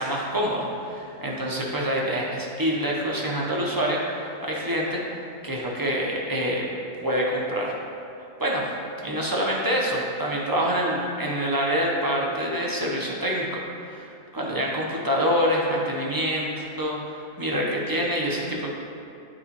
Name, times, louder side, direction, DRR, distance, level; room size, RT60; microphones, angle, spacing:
voice 1, 0.0-6.7 7.0-7.8 8.4-8.7 9.0-18.7, equal, 25° right, -3 dB, 0.5 m, -26 dB
8.9 x 4.0 x 2.9 m, 2.6 s
omnidirectional pair, 1.3 m